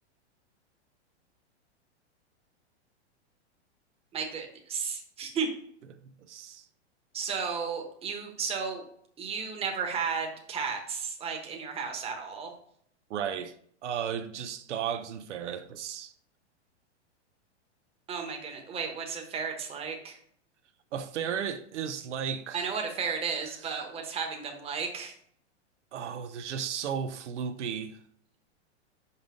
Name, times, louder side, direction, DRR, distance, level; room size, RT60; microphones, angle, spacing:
voice 1, 4.1-5.5 7.1-8.9 9.2-12.5 18.1-20.2 22.5-25.1, right 5 dB, 15° right, 1.1 m, -33 dB
voice 2, 6.0-6.7 13.1-13.5 13.8-16.1 20.9-22.7 25.9-28.0, right 8 dB, 85° right, 0.7 m, -34 dB
5.7 x 5.1 x 3.7 m
hypercardioid pair, 140°, 35 cm